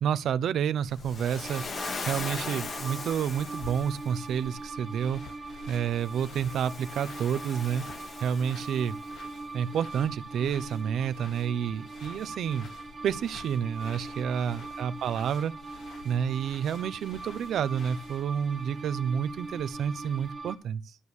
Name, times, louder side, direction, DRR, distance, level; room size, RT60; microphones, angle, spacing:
voice 1, 0.0-1.6 2.0-5.2 5.7-7.8 8.2-9.0 9.5-12.7 13.0-15.5 16.0-21.0, right 8 dB, 70° right, 0.8 m, -29 dB
sound 1, 0.8-20.3, left 5 dB, 65° left, 2.9 m, -51 dB
Waves surf, 1.0-4.2 6.0-9.1, left 4 dB, 35° left, 2.3 m, -39 dB
sound 2, 1.4-20.6, right 3 dB, 25° right, 4.2 m, -42 dB
13.0 x 6.5 x 7.1 m
cardioid pair, 155°, 0 cm